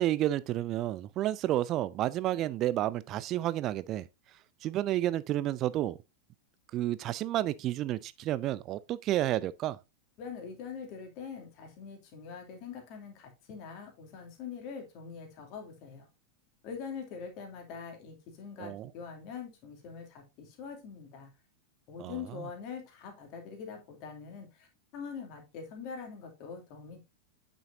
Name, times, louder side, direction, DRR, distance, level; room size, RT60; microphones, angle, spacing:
voice 1, 0.0-4.1 4.6-6.0 6.7-9.8 18.6-18.9 22.0-22.1, right 13 dB, 35° right, 0.4 m, -30 dB
voice 2, 10.2-16.1 16.6-21.3 21.9-27.0, left 6 dB, 40° left, 2.6 m, -43 dB
8.9 x 6.2 x 2.6 m
figure-of-eight pair, 90°, 0 cm